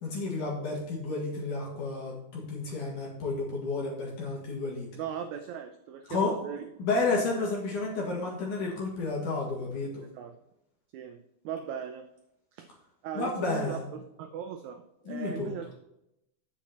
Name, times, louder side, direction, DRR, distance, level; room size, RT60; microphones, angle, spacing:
voice 1, 0.0-4.9 6.1-10.0 13.1-13.8 15.1-15.5, left 3 dB, 60° left, -3 dB, 3.3 m, -31 dB
voice 2, 5.0-6.6 7.4-7.5 10.1-10.3 10.9-11.2 11.4-12.1 12.5-12.7 13.0-15.7, right 8 dB, 85° right, 7 dB, 1.6 m, -38 dB
8.5 x 7.2 x 4.2 m, 0.84 s
omnidirectional pair, 4.1 m